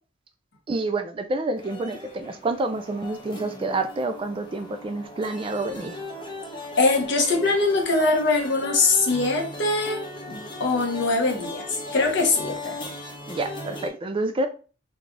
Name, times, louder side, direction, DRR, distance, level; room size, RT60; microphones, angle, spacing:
voice 1, 0.7-6.3 6.6-6.7 13.3-14.5, right 2 dB, 25° right, 0.3 m, -28 dB
sound 1, 1.6-13.9, left 1 dB, 25° left, 0.7 m, -38 dB
voice 2, 6.8-10.0 10.3-11.6 11.9-12.8, left 3 dB, 60° left, 0.9 m, -22 dB
3.2 x 2.3 x 3.7 m
head